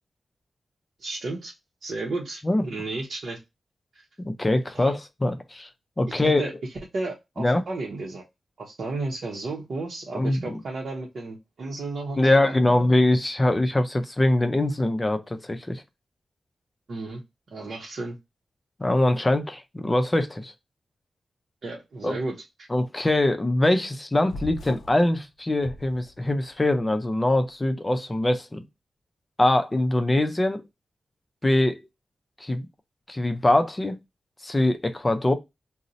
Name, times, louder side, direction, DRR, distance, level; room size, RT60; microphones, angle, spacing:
voice 1, 1.0-1.5 1.8-3.4 3.9-4.0 4.7-4.9 6.2-6.5 6.9-8.2 8.6-12.5 16.9-17.2 17.5-18.2 21.6-22.7, right 2 dB, 65° right, 0.7 m, -33 dB
voice 2, 4.3-5.7 6.0-6.4 7.4-7.6 10.1-10.6 12.2-15.8 18.8-20.5 22.0-22.2 22.7-28.6 29.4-30.6 31.4-31.8 32.4-32.7 33.1-34.0 34.4-35.3, left 1 dB, 20° left, 0.4 m, -23 dB
sound 1, 24.3-25.0 25.6-26.5, left 3 dB, 85° left, 0.4 m, -39 dB
2.5 x 2.0 x 3.9 m
wide cardioid pair, 110°, 0 cm